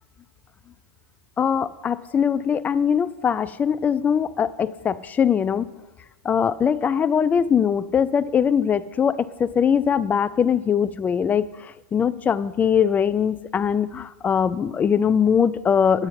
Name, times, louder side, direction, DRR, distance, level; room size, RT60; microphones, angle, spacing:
voice 1, 1.4-5.7 6.2-16.1, left 7 dB, 15° left, 16 dB, 0.3 m, -21 dB
9.2 x 6.8 x 5.7 m, 1.1 s
hypercardioid pair, 110°, 10 cm